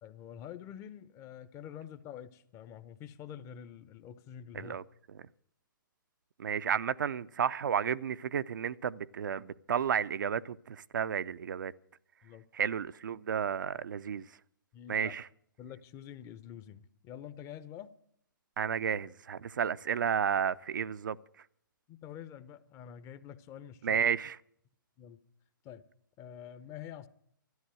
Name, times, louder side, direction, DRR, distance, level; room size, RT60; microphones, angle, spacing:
voice 1, 0.0-4.8 12.2-12.4 14.7-15.1 15.6-17.9 21.9-24.0 25.0-25.2 25.6-25.8 26.2-27.1, left 9 dB, 25° left, 0.8 m, -47 dB
voice 2, 6.4-11.7 12.5-14.3 14.9-15.3 18.6-21.2 23.8-24.4, right 8 dB, 65° right, 0.5 m, -32 dB
13.0 x 11.5 x 7.7 m
hypercardioid pair, 125°, 11 cm